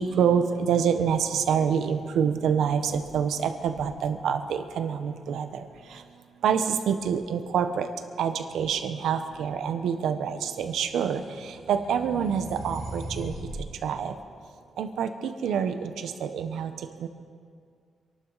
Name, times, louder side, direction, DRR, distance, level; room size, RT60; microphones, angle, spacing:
voice 1, 0.0-5.6 6.4-7.9 8.2-11.2 11.7-13.3 13.8-14.1 14.8-15.7 16.0-16.7 17.0-17.1, right 7 dB, 85° right, 8 dB, 1.1 m, -26 dB
sound 1, 10.7-13.7, right 1 dB, 55° right, 4.5 m, -39 dB
26.5 x 12.0 x 4.2 m, 2.2 s
wide cardioid pair, 165°, 0 cm